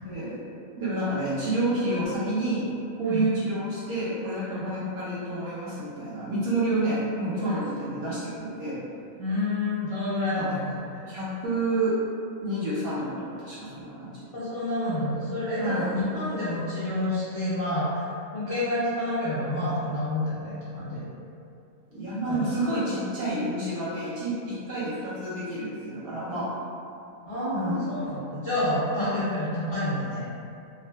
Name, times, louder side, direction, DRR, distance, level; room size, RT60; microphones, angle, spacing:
voice 1, 0.0-0.4 0.8-2.7 3.0-8.8 10.3-10.5 11.1-12.0 12.4-14.2 15.6-16.0 21.9-26.5 27.5-28.0, right 1 dB, 60° right, -9 dB, 0.7 m, -29 dB
voice 2, 9.2-10.7 10.9-11.0 14.3-18.1 18.3-21.0 22.2-22.5 27.2-30.2, left 1 dB, 45° left, -13 dB, 0.4 m, -28 dB
2.5 x 2.4 x 2.3 m, 2.5 s
omnidirectional pair, 1.4 m